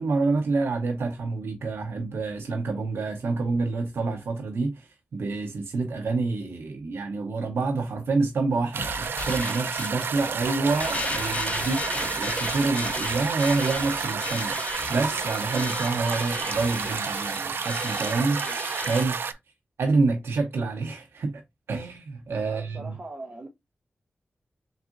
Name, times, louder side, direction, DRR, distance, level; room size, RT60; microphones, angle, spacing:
voice 1, 0.0-19.2 19.8-21.4 21.7-23.0, right 3 dB, 90° right, 0.7 m, -27 dB
sound 1, 8.7-19.3, right 6 dB, 65° right, 0.3 m, -30 dB
sound 2, 8.8-19.0, left 3 dB, 35° left, 0.6 m, -35 dB
voice 2, 22.4-23.5, right 2 dB, 35° right, 0.7 m, -40 dB
4.0 x 3.6 x 2.4 m
wide cardioid pair, 155°, 4 cm